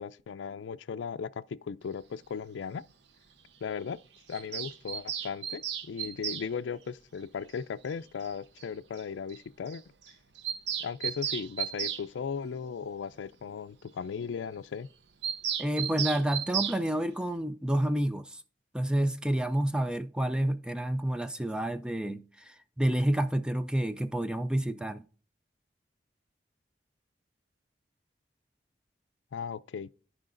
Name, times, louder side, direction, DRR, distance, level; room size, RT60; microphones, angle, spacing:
voice 1, 0.0-2.8 3.6-4.0 4.3-9.8 10.8-14.9 29.3-29.9, left 6 dB, 90° left, 0.4 m, -37 dB
Bird vocalization bird call bird song, 4.3-6.5 7.9-8.0 8.2-8.3 8.6-8.7 9.0-9.1 9.3-9.4 9.7-9.8 10.1-12.0 15.2-16.8, right 9 dB, 75° right, 0.7 m, -34 dB
voice 2, 15.6-18.4 18.7-25.0, right 1 dB, 5° right, 0.3 m, -29 dB
14.5 x 4.9 x 2.5 m
head